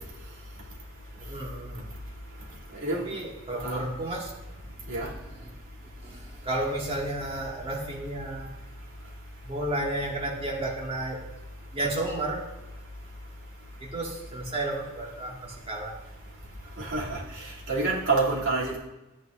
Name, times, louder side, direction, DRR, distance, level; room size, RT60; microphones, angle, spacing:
voice 1, 1.2-1.9 3.1-4.3 4.8-5.5 5.8-8.5 9.4-11.2 11.7-12.4 13.8-15.9, right 1 dB, 25° right, -3 dB, 2.0 m, -32 dB
voice 2, 2.8-3.2 3.6-3.8 4.9-5.1 16.8-18.8, right 3 dB, 60° right, -5 dB, 2.9 m, -28 dB
13.5 x 9.1 x 2.6 m, 0.98 s
head